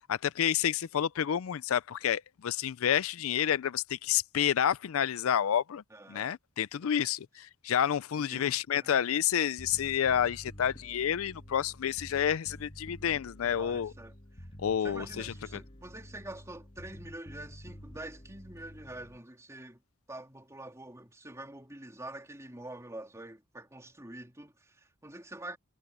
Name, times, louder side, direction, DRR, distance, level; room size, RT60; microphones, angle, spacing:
voice 1, 0.1-5.8 6.1-13.9 14.6-15.3, left 9 dB, 80° left, 0.4 m, -29 dB
voice 2, 5.9-6.3 6.8-7.0 8.1-8.9 13.4-14.5 14.8-19.8 20.1-25.6, right 1 dB, 15° right, 3.5 m, -46 dB
Bass guitar, 9.6-19.2, equal, 30° left, 1.5 m, -49 dB
head